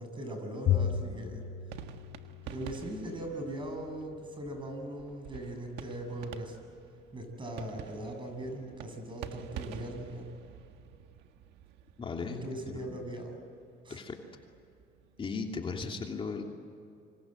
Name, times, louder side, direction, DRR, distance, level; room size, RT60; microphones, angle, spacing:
voice 1, 0.0-1.4 2.5-6.6 7.1-10.3 12.2-13.4 13.8-14.0, right 1 dB, 30° right, 5 dB, 7.4 m, -40 dB
Bowed string instrument, 0.7-3.2, left 9 dB, 70° left, 4.3 m, -33 dB
sound 1, 0.7-15.8, right 8 dB, 85° right, 1.6 m, -49 dB
voice 2, 12.0-12.4 12.7-13.0 13.9-14.2 15.2-16.4, left 4 dB, 30° left, 1 dB, 2.9 m, -36 dB
28.0 x 26.0 x 7.9 m, 2.6 s
cardioid pair, 110°, 17 cm